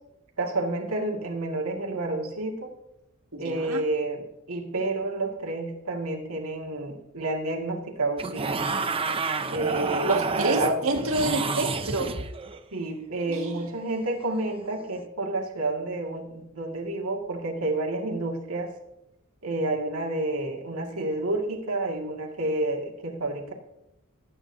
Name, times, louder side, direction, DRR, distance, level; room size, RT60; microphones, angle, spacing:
voice 1, 0.4-2.7 3.4-8.9 9.5-10.1 10.6-10.8 12.7-18.7 19.4-23.5, right 2 dB, 85° right, 1 dB, 2.1 m, -30 dB
voice 2, 3.3-3.8 10.0-12.1 13.3-13.6, right 2 dB, 70° right, 2 dB, 1.8 m, -27 dB
sound 1, 8.2-12.6 14.8-15.0, right 4 dB, 25° right, 0.6 m, -29 dB
19.5 x 8.8 x 2.7 m, 0.88 s
head